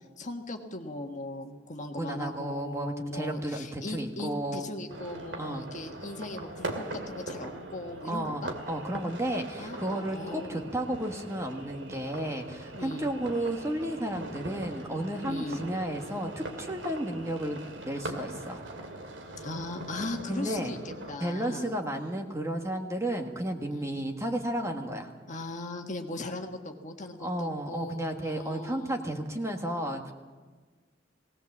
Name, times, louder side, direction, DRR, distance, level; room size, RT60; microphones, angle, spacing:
voice 1, 0.2-8.5 9.6-10.7 12.7-13.1 15.3-15.6 19.4-21.7 23.7-24.0 25.3-28.9, left 2 dB, 40° left, 3 dB, 1.6 m, -39 dB
voice 2, 1.9-4.7 5.4-5.7 8.0-18.6 20.3-20.7 21.2-25.1 27.2-30.1, right 1 dB, 15° right, 4 dB, 1.6 m, -33 dB
sound 1, 4.9-21.2, right 2 dB, 75° right, 2.4 m, -41 dB
20.0 x 18.0 x 7.3 m, 1.4 s
head